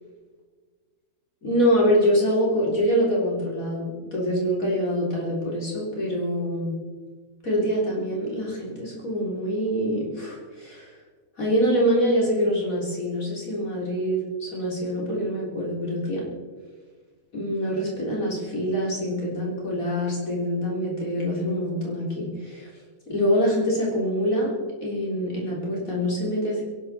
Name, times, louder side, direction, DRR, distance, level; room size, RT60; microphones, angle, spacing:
voice 1, 1.4-6.7 7.4-10.9 11.4-16.2 17.3-22.7 23.1-24.5 24.8-26.6, equal, 65° left, -4 dB, 4.1 m, -25 dB
22.5 x 12.0 x 4.3 m, 1.5 s
omnidirectional pair, 1.6 m